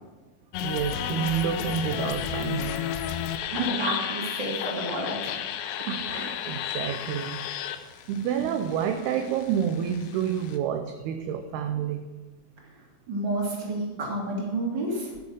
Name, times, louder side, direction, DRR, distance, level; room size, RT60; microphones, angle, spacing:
sound 1, 0.5-10.6, left 9 dB, 85° left, 3.1 m, -33 dB
voice 1, 0.6-2.9 5.8-12.1, right 8 dB, 80° right, 6 dB, 2.4 m, -29 dB
voice 2, 3.5-5.3 13.1-15.1, right 1 dB, 30° right, -2 dB, 3.1 m, -30 dB
15.0 x 7.2 x 6.4 m, 1.3 s
omnidirectional pair, 5.1 m